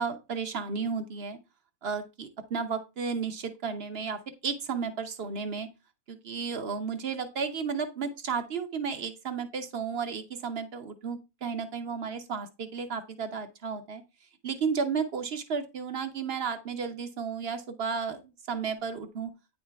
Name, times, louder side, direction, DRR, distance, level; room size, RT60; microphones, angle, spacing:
voice 1, 0.0-1.4 1.8-5.7 6.1-14.0 14.4-19.3, right 5 dB, 55° right, 8 dB, 0.7 m, -33 dB
9.4 x 4.4 x 3.4 m, 0.27 s
omnidirectional pair, 1.9 m